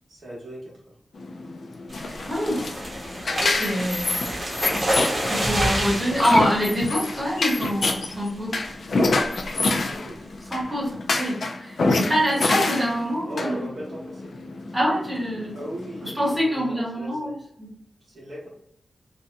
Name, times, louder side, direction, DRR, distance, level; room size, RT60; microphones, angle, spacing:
voice 1, 0.1-0.9 4.2-4.4 9.9-10.2 12.3-12.4 13.2-14.4 15.5-17.3 18.0-18.5, right 1 dB, 60° right, -5 dB, 1.0 m, -38 dB
sound 1, 1.2-16.3, left 3 dB, 65° left, 0.3 m, -27 dB
sound 2, 1.9-7.7 8.1-8.4 8.7-8.8 9.1-9.4, equal, 30° right, 0.8 m, -29 dB
voice 2, 2.2-2.7 3.4-4.2 5.2-8.6 10.5-13.6 14.7-15.6 16.0-17.7, equal, 5° right, -7 dB, 1.1 m, -25 dB
2.7 x 2.1 x 2.5 m, 0.74 s
wide cardioid pair, 160°, 0 cm